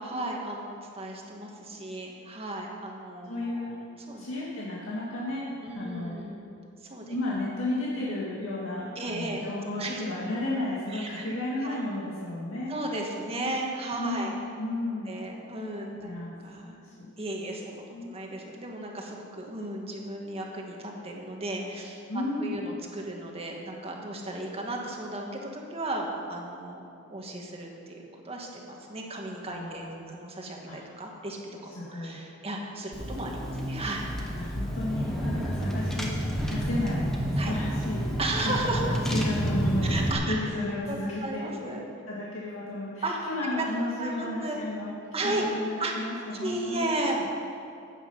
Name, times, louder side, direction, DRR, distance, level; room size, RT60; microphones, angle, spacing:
voice 1, 0.0-3.7 4.1-4.3 5.6-6.5 6.8-7.1 9.0-9.4 9.8-10.0 10.9-11.3 11.6-11.8 12.7-14.3 15.1-16.1 16.4-16.8 17.2-26.8 27.1-31.4 31.6-34.0 37.4-37.5 38.2-38.8 39.8-40.4 40.9-41.8 43.0-43.2 43.4-43.6 44.0-44.6 45.1-45.5 45.8-45.9 46.4-47.2, right 2 dB, 30° right, 0 dB, 1.9 m, -35 dB
voice 2, 3.2-3.8 4.2-6.2 7.1-12.7 14.0-15.1 16.0-16.3 16.6-17.1 17.9-18.1 22.1-22.6 29.5-30.1 30.7-30.8 31.6-32.2 34.3-37.1 37.3-38.0 38.4-40.0 40.3-41.8 42.1-44.9 45.2-46.9 47.2-47.3, left 1 dB, 85° left, -6 dB, 2.1 m, -33 dB
Car / Engine, 32.9-40.1, equal, ahead, 1.6 m, -29 dB
15.5 x 9.4 x 5.6 m, 2.5 s
head